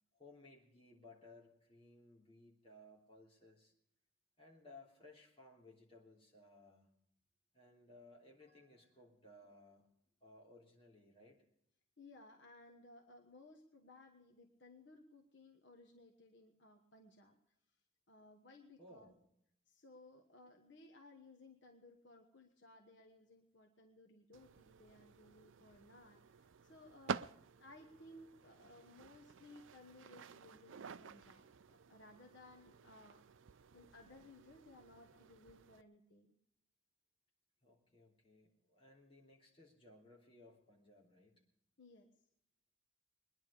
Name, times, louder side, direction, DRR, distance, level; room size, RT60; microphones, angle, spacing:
voice 1, 0.1-3.7 4.4-6.9 7.5-9.9 10.2-11.4 18.8-19.2 29.5-29.9 37.6-41.4, left 2 dB, 25° left, -2 dB, 3.3 m, -61 dB
voice 2, 12.0-17.3 18.1-19.1 19.7-27.3 27.6-33.2 33.7-36.3 41.8-42.1, left 2 dB, 55° left, 3 dB, 1.3 m, -60 dB
sound 1, 24.3-35.8, right 6 dB, 70° right, 0.5 m, -51 dB
21.5 x 10.5 x 5.0 m, 0.72 s
head